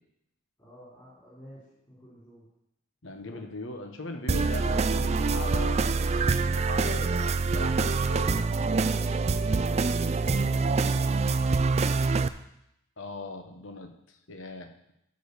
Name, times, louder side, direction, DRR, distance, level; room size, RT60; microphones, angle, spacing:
voice 1, 0.6-2.5 3.3-3.4 8.1-9.9 10.3-11.3, equal, 20° left, -9 dB, 3.6 m, -49 dB
voice 2, 3.0-8.5 13.0-14.9, left 2 dB, 65° left, 6 dB, 1.2 m, -40 dB
sound 1, 4.3-12.3, right 4 dB, 30° right, 0.3 m, -25 dB
12.5 x 5.3 x 6.7 m, 0.81 s
head